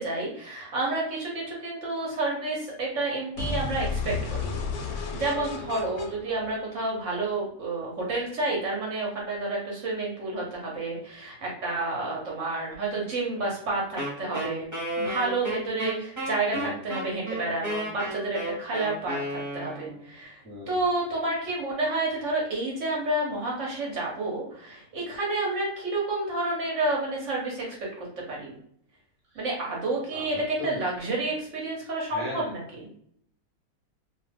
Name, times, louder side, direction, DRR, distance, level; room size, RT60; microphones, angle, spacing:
voice 1, 0.0-4.5 5.1-14.7 15.0-20.4 20.7-27.9 28.3-28.5 29.3-32.9, right 2 dB, 55° right, -3 dB, 1.1 m, -30 dB
sound 1, 3.4-7.3, left 4 dB, 80° left, 1.1 m, -33 dB
Wind instrument woodwind instrument, 14.0-20.0, right 1 dB, 15° right, 0.9 m, -32 dB
voice 2, 30.1-30.7 32.1-32.5, left 1 dB, 10° left, -7 dB, 0.6 m, -38 dB
2.6 x 2.3 x 3.3 m, 0.67 s
omnidirectional pair, 1.6 m